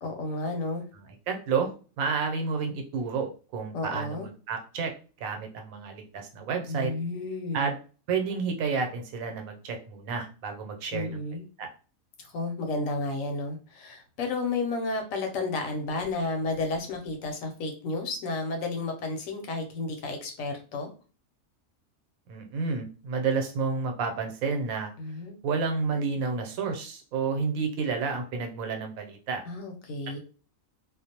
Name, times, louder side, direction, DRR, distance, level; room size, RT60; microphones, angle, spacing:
voice 1, 0.0-0.8 3.7-4.3 6.7-7.7 10.9-11.4 12.2-20.9 25.0-25.4 29.5-30.2, left 3 dB, 75° left, 3 dB, 1.0 m, -32 dB
voice 2, 1.3-1.7 2.0-4.9 5.2-6.9 7.5-7.7 8.1-11.2 11.6-11.7 22.3-24.9 25.4-29.4, right 5 dB, 90° right, 4 dB, 1.1 m, -30 dB
2.5 x 2.0 x 2.7 m, 0.37 s
omnidirectional pair, 1.4 m